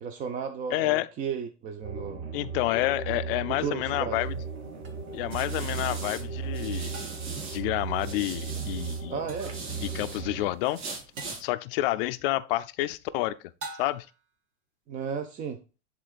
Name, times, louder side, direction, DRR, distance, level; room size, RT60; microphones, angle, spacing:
voice 1, 0.0-2.3 3.6-4.2 9.1-9.5 14.9-15.6, right 6 dB, 25° right, 0.5 m, -34 dB
voice 2, 0.7-1.1 2.3-4.4 5.1-6.9 7.5-9.2 9.8-10.8 11.4-13.4 13.8-14.1, left 17 dB, 50° left, 0.5 m, -29 dB
sound 1, 1.8-10.5, right 5 dB, 45° right, 2.1 m, -36 dB
sound 2, 4.4-7.6 7.9-10.2 10.6-11.4, right 3 dB, 70° right, 2.9 m, -40 dB
sound 3, 4.9-5.0 6.9-7.4 9.3-9.7 11.2-11.5 13.6-14.2, right 2 dB, 90° right, 1.9 m, -43 dB
11.0 x 3.8 x 2.4 m
supercardioid pair, 145°, 35 cm